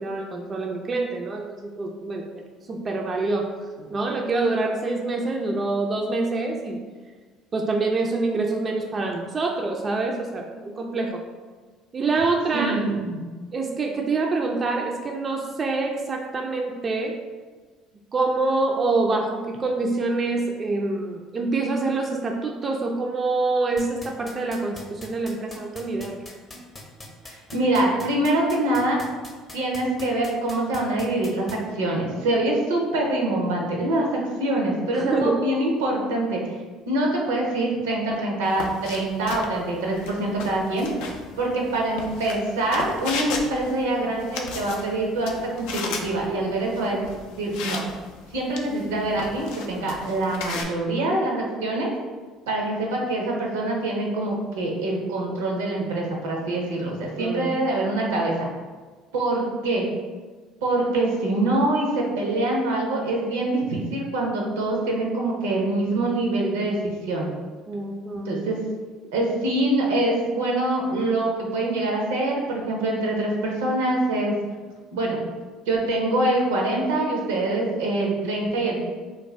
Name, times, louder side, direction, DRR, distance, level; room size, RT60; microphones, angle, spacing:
voice 1, 0.0-2.3 2.7-3.5 3.9-6.8 7.5-11.2 11.9-12.9 13.5-17.2 18.1-26.2 34.9-35.5 57.2-57.6 67.7-68.3, right 3 dB, 35° right, 1 dB, 0.3 m, -26 dB
voice 2, 12.5-13.2 27.2-29.0 29.5-36.6 36.9-40.9 41.4-47.0 47.4-47.8 48.3-51.9 52.5-58.3 59.1-59.9 60.6-67.3 68.2-68.6 69.1-74.3 74.9-75.2 75.7-78.8, right 2 dB, 80° right, -1 dB, 0.6 m, -24 dB
sound 1, 23.8-31.5, left 2 dB, 25° left, 0.6 m, -40 dB
sound 2, 38.4-50.6, left 4 dB, 75° left, 0.3 m, -36 dB
2.5 x 2.2 x 3.2 m, 1.4 s
hypercardioid pair, 65°, 0 cm